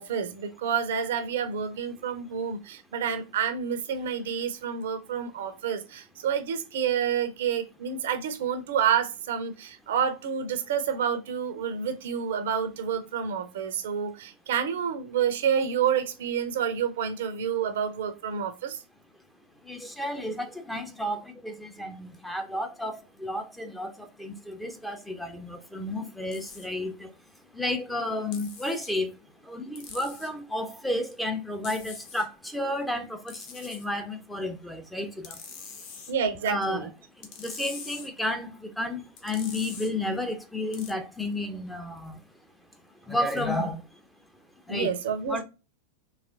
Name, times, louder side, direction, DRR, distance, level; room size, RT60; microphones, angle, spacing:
voice 1, 0.0-18.8 36.1-36.9 44.7-45.4, right 7 dB, 60° right, 0.6 m, -29 dB
voice 2, 19.6-35.8 36.5-36.9 37.1-42.2 42.9-44.0 44.6-44.9 45.3-45.4, left 1 dB, 5° left, 0.6 m, -32 dB
sound 1, 26.3-26.7 28.3-28.9 29.7-30.3 31.6-32.3 33.3-33.8 35.2-36.1 37.2-38.1 39.2-39.9 40.7-40.9, left 5 dB, 45° left, 0.8 m, -43 dB
4.0 x 2.9 x 2.5 m
figure-of-eight pair, 90°, 0 cm